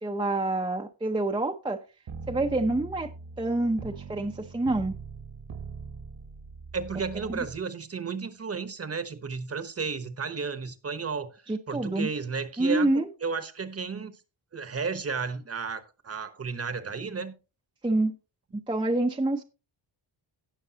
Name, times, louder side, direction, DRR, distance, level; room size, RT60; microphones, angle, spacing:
voice 1, 0.0-1.8 2.3-3.1 3.4-4.9 7.3-7.4 11.5-12.1 12.6-13.1 17.8-18.1 18.5-19.4, right 2 dB, 10° right, 0.7 m, -27 dB
sound 1, 2.1-7.6, right 4 dB, 50° right, 1.3 m, -42 dB
voice 2, 6.7-12.9 13.2-14.1 14.5-17.3, right 5 dB, 35° right, 1.1 m, -33 dB
17.5 x 6.6 x 2.8 m
wide cardioid pair, 160°, 44 cm